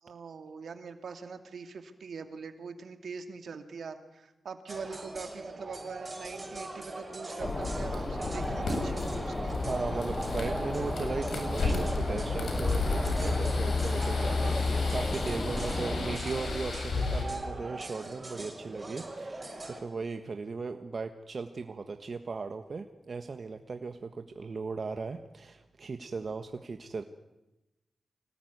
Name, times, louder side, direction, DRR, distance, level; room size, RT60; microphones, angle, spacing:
voice 1, 0.0-9.5 15.6-15.9, right 5 dB, 75° right, 7 dB, 2.5 m, -43 dB
sound 1, 4.7-19.8, right 2 dB, 30° right, 6.7 m, -40 dB
sound 2, 7.4-17.2, left 3 dB, 75° left, 7.9 m, -32 dB
sound 3, 7.4-16.2, left 2 dB, 25° left, 0.8 m, -37 dB
voice 2, 9.6-27.0, right 4 dB, 55° right, 7 dB, 1.4 m, -37 dB
25.0 x 19.0 x 9.6 m, 0.98 s
cardioid pair, 55°, 0 cm